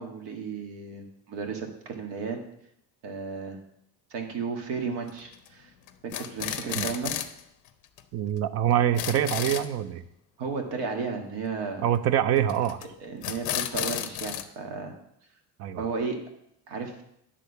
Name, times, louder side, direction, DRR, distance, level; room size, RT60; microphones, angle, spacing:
voice 1, 0.0-2.4 3.0-3.6 4.1-5.7 6.0-7.1 10.4-11.8 13.0-14.9 15.8-16.2 16.7-16.9, right 5 dB, 70° right, 3 dB, 1.7 m, -34 dB
sound 1, 5.1-5.5 5.9-7.4 7.7-7.8 8.0-8.1 8.4-8.5 8.7-9.7 12.5-12.9 13.2-14.4, left 11 dB, 50° left, 0.7 m, -32 dB
voice 2, 8.1-10.0 11.8-12.8 15.6-15.9, right 10 dB, 40° right, 13 dB, 0.5 m, -25 dB
9.8 x 3.7 x 6.8 m, 0.76 s
cardioid pair, 155°, 38 cm